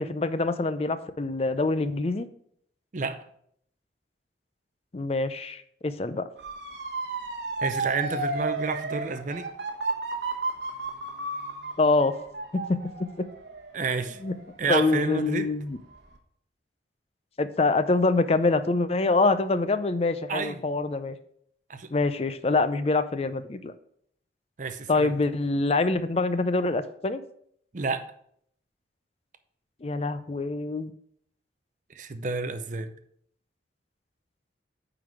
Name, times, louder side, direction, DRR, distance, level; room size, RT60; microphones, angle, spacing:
voice 1, 0.0-2.3 4.9-6.3 11.8-12.1 12.5-12.8 13.2-13.3 14.2-14.3 14.7-15.8 17.4-21.2 21.9-23.7 24.9-27.2 29.8-30.9, left 3 dB, 30° left, 12 dB, 0.4 m, -25 dB
voice 2, 2.9-3.2 7.6-9.5 13.7-14.2 14.6-15.5 20.3-20.6 21.7-21.9 24.6-25.1 27.7-28.1 31.9-32.9, right 4 dB, 40° right, 9 dB, 0.5 m, -30 dB
Motor vehicle (road) / Siren, 6.4-15.3 15.7-16.2, right 3 dB, 60° right, 1.2 m, -33 dB
9.4 x 3.9 x 4.8 m, 0.67 s
head